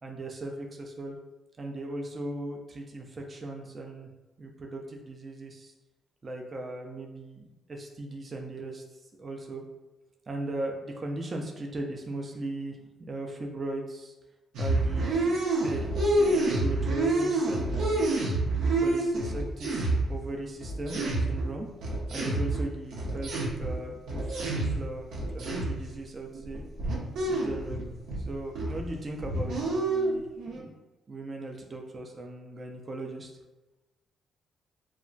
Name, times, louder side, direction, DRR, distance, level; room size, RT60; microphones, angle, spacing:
voice 1, 0.0-1.2 1.6-4.1 4.4-5.7 6.2-9.6 10.3-14.1 14.6-15.4 15.6-18.1 18.6-26.6 27.3-27.8 28.2-30.7 31.1-33.3, right 2 dB, 35° right, 1 dB, 0.4 m, -38 dB
sound 1, 14.5-20.3 20.6-24.9 25.1-25.9 26.3-28.3 28.5-28.9 29.2-30.6, right 2 dB, 85° right, 0.7 m, -28 dB
2.2 x 2.1 x 3.8 m, 1.1 s
cardioid pair, 90°, 0 cm